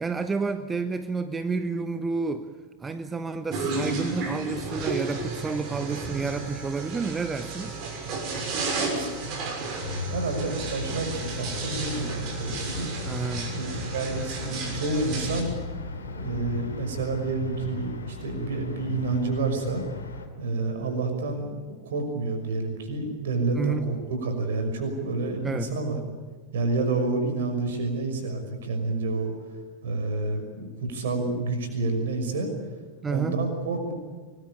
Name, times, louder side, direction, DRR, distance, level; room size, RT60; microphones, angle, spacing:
voice 1, 0.0-2.5 2.8-7.7 13.0-13.6 23.6-23.9 25.4-25.7 33.0-33.4, right 4 dB, 15° right, 10 dB, 1.1 m, -30 dB
sound 1, 3.5-15.4, right 3 dB, 40° right, 6.5 m, -33 dB
voice 2, 8.4-12.9 13.5-15.5 16.1-19.8 20.4-26.0 26.5-29.3 29.8-32.5 33.0-33.9, right 3 dB, 60° right, 6 dB, 6.0 m, -29 dB
sound 2, 9.8-20.3, left 4 dB, 70° left, 2.8 m, -36 dB
24.5 x 21.0 x 8.8 m, 1.4 s
figure-of-eight pair, 90°, 0 cm